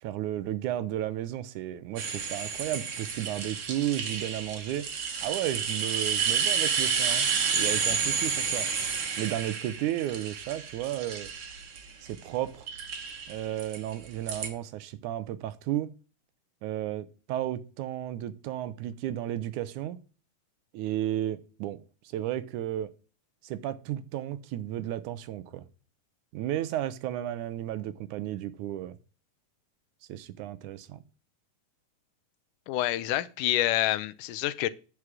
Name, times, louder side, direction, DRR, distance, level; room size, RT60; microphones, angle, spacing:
voice 1, 0.0-4.9 5.2-7.3 7.5-8.7 9.2-11.3 12.0-12.7 13.3-15.9 16.6-20.0 20.7-21.8 22.1-22.9 23.4-25.6 26.3-29.0 30.1-31.0, right 12 dB, 75° right, 2.0 m, -33 dB
sound 1, 2.0-12.2 12.7-14.5, right 6 dB, 50° right, 1.9 m, -30 dB
voice 2, 32.7-34.7, left 15 dB, 80° left, 2.1 m, -27 dB
9.6 x 4.9 x 7.5 m
omnidirectional pair, 3.8 m